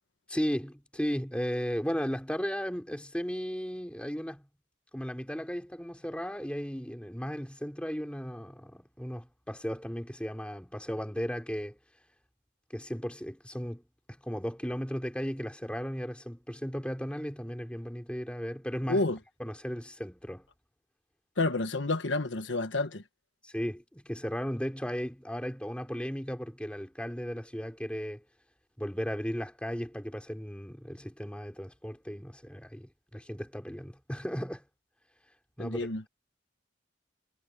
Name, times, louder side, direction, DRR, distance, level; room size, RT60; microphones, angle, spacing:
voice 1, 0.3-4.5 4.9-11.8 12.7-13.8 14.2-19.1 19.4-20.4 23.4-28.2 28.8-34.6 35.6-36.1, equal, 5° left, 3.2 m, -35 dB
voice 2, 21.4-23.0 35.6-36.0, left 2 dB, 75° left, 1.3 m, -29 dB
head